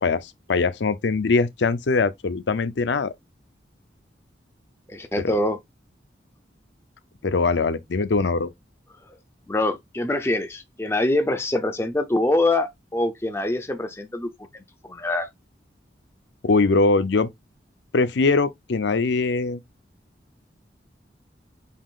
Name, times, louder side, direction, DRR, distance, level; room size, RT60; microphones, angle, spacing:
voice 1, 0.0-3.1 7.2-8.5 16.4-17.3 17.9-19.6, left 3 dB, 75° left, 0.5 m, -22 dB
voice 2, 4.9-5.6 9.1-9.2 9.5-14.3 14.9-15.3, left 2 dB, 15° left, 0.5 m, -24 dB
5.4 x 3.7 x 2.4 m
head